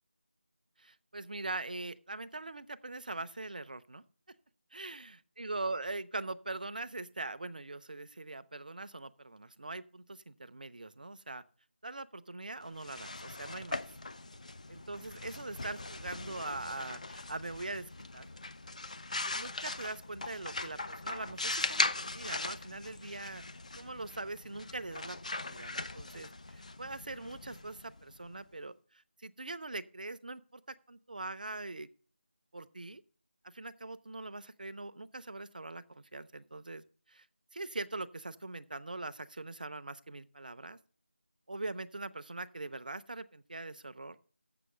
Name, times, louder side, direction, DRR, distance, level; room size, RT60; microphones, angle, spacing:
voice 1, 0.8-4.0 4.7-5.1 5.4-11.4 11.8-13.8 14.7-18.3 19.3-23.4 23.8-30.6 30.9-31.9 32.5-33.0 33.4-37.3 37.5-40.8 41.5-44.2, right 2 dB, 45° right, 14 dB, 0.5 m, -42 dB
sound 1, 12.7-28.3, left 2 dB, 35° left, 0.4 m, -40 dB
7.7 x 6.4 x 7.4 m, 0.42 s
figure-of-eight pair, 165°, 6 cm